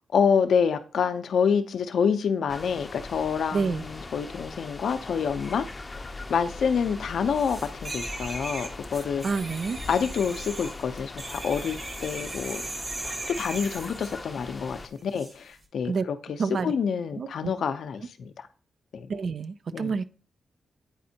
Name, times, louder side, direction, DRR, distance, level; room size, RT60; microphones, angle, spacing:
voice 1, 0.1-5.7 6.3-9.2 9.9-12.6 13.0-16.4 16.6-18.3 18.9-19.1 19.7-19.9, left 6 dB, 75° left, 9 dB, 0.6 m, -27 dB
sound 1, 2.5-14.9, left 3 dB, 35° left, 0.6 m, -40 dB
voice 2, 3.5-3.8 9.2-9.8 15.9-16.0 16.4-16.7 17.2-17.5 19.1-20.0, right 5 dB, 65° right, 13 dB, 0.5 m, -28 dB
sound 2, 7.4-14.2 15.1-15.3, right 2 dB, 40° right, 1.5 m, -38 dB
8.9 x 4.2 x 2.8 m, 0.41 s
supercardioid pair, 45°, 0 cm